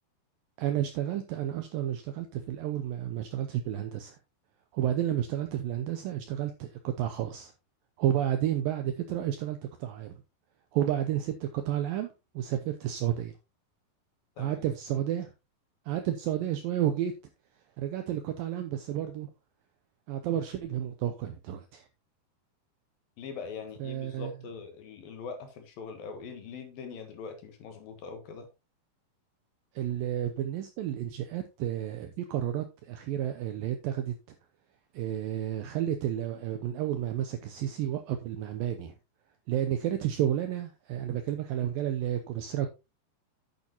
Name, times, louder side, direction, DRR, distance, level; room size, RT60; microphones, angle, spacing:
voice 1, 0.6-4.2 4.7-7.5 8.0-10.2 10.7-13.3 14.4-15.3 15.9-17.1 17.8-19.3 20.1-21.9 23.8-24.3 29.7-34.2 34.9-38.9 39.5-42.7, right 11 dB, 85° right, 2.0 m, -31 dB
voice 2, 23.2-28.5, left 5 dB, 65° left, 2.9 m, -42 dB
9.0 x 8.5 x 2.9 m
omnidirectional pair, 4.9 m